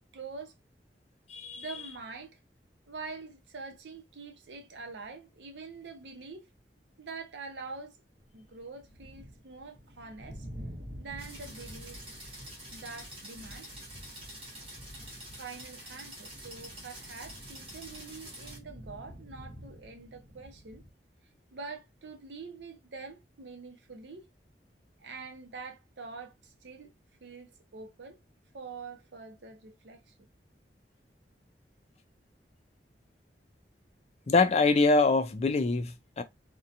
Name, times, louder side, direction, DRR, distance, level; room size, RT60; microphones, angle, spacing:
voice 1, 0.1-0.5 1.5-2.4 2.9-6.5 7.0-8.0 8.3-10.5 10.9-12.0 12.7-13.7 15.3-20.8 21.5-24.3 25.0-26.9 27.2-28.2 28.5-30.1, right 4 dB, 85° right, 0.6 m, -45 dB
voice 2, 1.3-1.7 34.3-36.2, left 3 dB, 35° left, 0.3 m, -24 dB
sound 1, 8.2-20.9, equal, 55° right, 0.8 m, -49 dB
sound 2, 11.2-18.6, right 1 dB, 30° right, 1.1 m, -47 dB
2.7 x 2.2 x 2.5 m
head